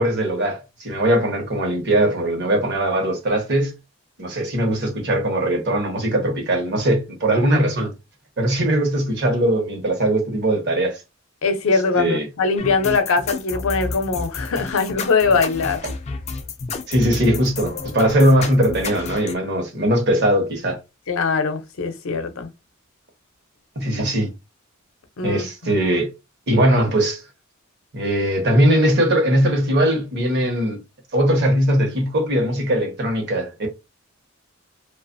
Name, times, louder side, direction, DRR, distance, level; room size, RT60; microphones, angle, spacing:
voice 1, 0.0-3.7 4.2-7.9 8.4-11.0 11.9-12.3 16.9-20.8 23.8-24.3 25.2-26.1 26.5-27.2 27.9-30.8 31.1-33.7, right 1 dB, 55° right, 1.0 m, -20 dB
voice 2, 11.4-15.8 21.1-22.5 25.2-25.7, left 4 dB, 80° left, 0.6 m, -21 dB
sound 1, 12.6-19.3, left 4 dB, 35° left, 0.3 m, -31 dB
2.5 x 2.4 x 2.5 m
head